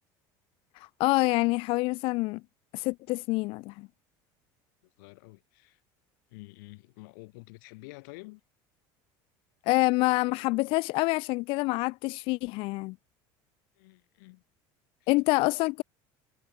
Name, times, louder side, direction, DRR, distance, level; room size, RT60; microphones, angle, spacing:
voice 1, 0.7-2.4 2.7-3.9 9.7-13.0 15.1-15.8, left 23 dB, 60° left, 0.4 m, -26 dB
voice 2, 5.0-5.8 6.3-8.4 13.8-14.4 15.0-15.1, left 27 dB, 85° left, 5.3 m, -49 dB
cardioid pair, 125°, 10 cm